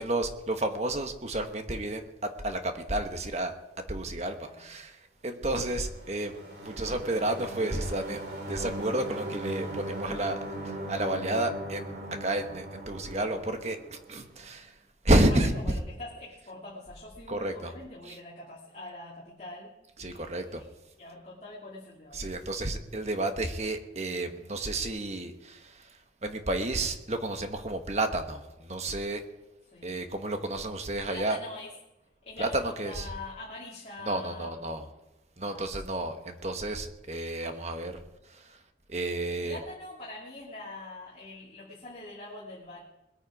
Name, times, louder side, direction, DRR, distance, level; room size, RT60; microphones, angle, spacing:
voice 1, 0.0-3.5 3.9-4.9 5.2-6.3 6.6-10.4 10.9-14.7 15.0-15.5 17.3-17.7 18.1-18.2 20.0-20.6 22.1-25.6 26.2-29.2 29.8-31.4 32.4-33.1 34.0-34.8 35.4-37.9 38.9-39.6, right 1 dB, 35° right, 6 dB, 1.2 m, -31 dB
sound 1, 5.6-14.3, right 1 dB, 60° right, 2.8 m, -39 dB
voice 2, 15.1-19.7 20.0-20.7 21.0-22.3 29.7-30.0 31.1-31.7 32.2-34.9 35.4-36.1 37.4-37.6 39.4-42.8, left 2 dB, 35° left, -6 dB, 2.7 m, -44 dB
21.0 x 9.3 x 4.9 m, 0.98 s
head